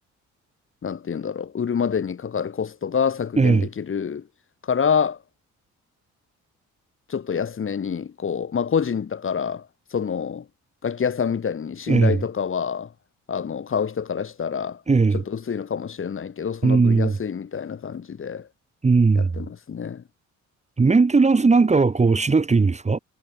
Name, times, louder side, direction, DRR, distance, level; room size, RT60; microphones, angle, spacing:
voice 1, 0.8-4.2 4.7-5.2 7.1-9.7 9.9-10.4 10.8-12.9 13.3-14.8 15.3-18.5 19.1-20.0, left 7 dB, 45° left, 2.8 m, -27 dB
voice 2, 3.4-3.7 11.9-12.2 14.9-15.2 16.6-17.2 18.8-19.3 20.8-23.0, right 4 dB, 25° right, 1.4 m, -18 dB
cardioid pair, 90°, 30 cm